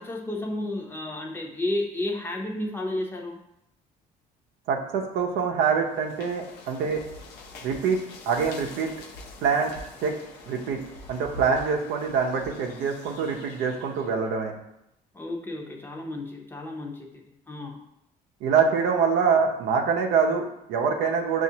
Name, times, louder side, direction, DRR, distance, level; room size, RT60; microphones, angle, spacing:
voice 1, 0.0-3.4 15.1-17.8, left 1 dB, 15° left, 0 dB, 0.6 m, -32 dB
voice 2, 4.7-7.0 7.6-8.0 8.3-8.9 9.4-9.7 10.0-10.2 10.5-10.8 11.1-14.5 18.4-21.4, right 6 dB, 85° right, 3 dB, 0.6 m, -25 dB
sound 1, 5.8-14.2, left 2 dB, 90° left, 0.7 m, -45 dB
5.9 x 2.5 x 2.8 m, 0.81 s
cardioid pair, 110°, 17 cm